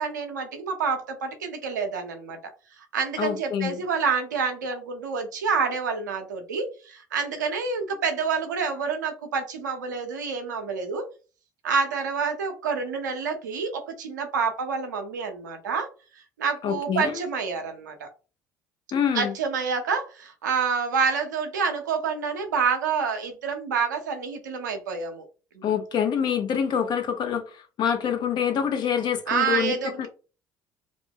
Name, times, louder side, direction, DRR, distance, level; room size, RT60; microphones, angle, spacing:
voice 1, 0.0-2.4 2.7-11.1 11.6-15.9 16.4-18.1 19.1-25.2 25.5-25.6 29.3-30.1, right 5 dB, 85° right, 0.6 m, -28 dB
voice 2, 3.2-3.8 16.6-17.2 18.9-19.3 25.6-30.1, left 8 dB, 50° left, 0.7 m, -26 dB
2.4 x 2.0 x 3.6 m
hypercardioid pair, 60°, 10 cm